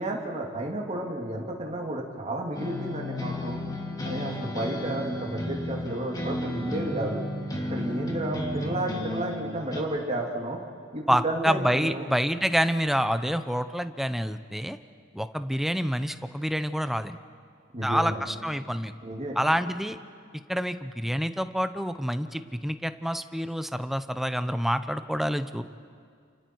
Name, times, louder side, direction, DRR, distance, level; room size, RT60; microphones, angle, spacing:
voice 1, 0.0-3.6 4.0-7.2 7.7-10.6 10.9-12.1 17.7-18.2 19.0-19.4, right 1 dB, 35° right, -1 dB, 2.8 m, -32 dB
sound 1, 2.5-9.8, left 1 dB, 20° left, 2.7 m, -33 dB
voice 2, 11.1-14.8 15.1-17.2 17.8-18.9 19.4-20.0 20.5-25.6, equal, ahead, 11 dB, 0.7 m, -27 dB
29.5 x 29.0 x 4.7 m, 2.2 s
head